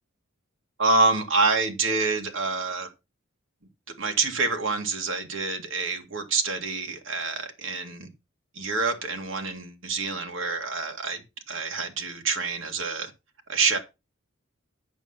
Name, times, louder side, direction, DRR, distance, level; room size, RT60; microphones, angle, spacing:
voice 1, 0.8-2.9 4.0-8.1 8.5-11.2 11.5-13.1 13.5-13.8, right 3 dB, 65° right, 2.1 m, -27 dB
8.3 x 6.6 x 5.7 m
head